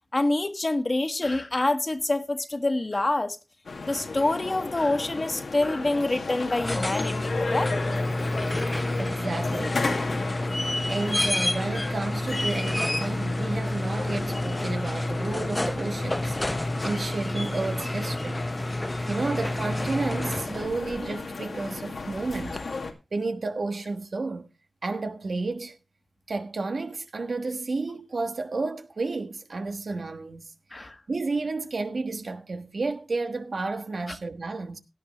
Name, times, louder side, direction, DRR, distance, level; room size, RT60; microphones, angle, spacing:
voice 1, 0.1-3.4 3.8-7.7 8.7-8.8 30.7-31.0 34.1-34.2, left 2 dB, 45° left, 1.5 m, -26 dB
sound 1, 3.6-22.9, left 3 dB, 90° left, 1.8 m, -34 dB
sound 2, 6.4-20.8 22.6-22.7, left 1 dB, 20° left, 0.5 m, -29 dB
voice 2, 9.0-10.3 10.9-18.4 19.0-22.6 23.1-24.5 24.8-25.8 26.3-30.5 31.1-34.8, right 3 dB, 75° right, 1.4 m, -31 dB
17.0 x 10.0 x 3.2 m
cardioid pair, 45°, 0 cm